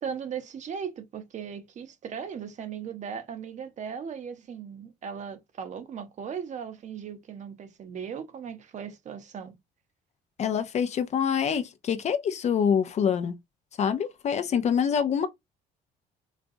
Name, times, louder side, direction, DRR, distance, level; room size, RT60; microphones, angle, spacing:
voice 1, 0.0-9.6, right 7 dB, 45° right, 0.7 m, -37 dB
voice 2, 10.4-13.3 13.8-15.3, left 7 dB, 40° left, 0.4 m, -25 dB
4.0 x 2.2 x 2.6 m
cardioid pair, 110°, 17 cm